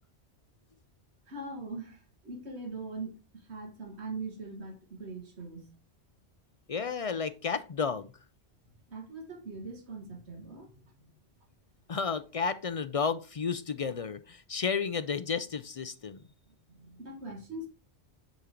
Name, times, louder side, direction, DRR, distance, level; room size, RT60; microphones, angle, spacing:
voice 1, 1.3-5.8 8.7-11.2 16.5-17.7, right 3 dB, 75° right, 1.9 m, -42 dB
voice 2, 6.7-8.1 11.9-16.2, left 5 dB, 55° left, 0.4 m, -32 dB
9.8 x 3.8 x 4.4 m
omnidirectional pair, 1.1 m